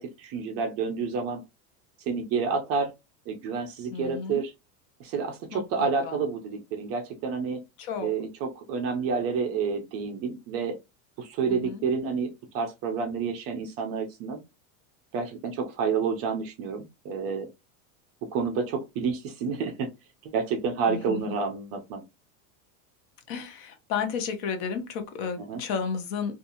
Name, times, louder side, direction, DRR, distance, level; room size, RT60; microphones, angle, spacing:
voice 1, 0.0-1.4 2.1-2.9 3.3-4.5 5.0-7.6 8.0-10.8 11.2-14.4 15.1-17.5 18.3-19.9 20.2-22.0 25.4-25.6, right 5 dB, 35° right, 0.4 m, -29 dB
voice 2, 3.9-4.4 5.5-6.2 7.8-8.1 11.5-11.8 20.9-21.3 23.3-26.3, left 6 dB, 50° left, 0.6 m, -32 dB
2.7 x 2.4 x 2.5 m
supercardioid pair, 155°, 43 cm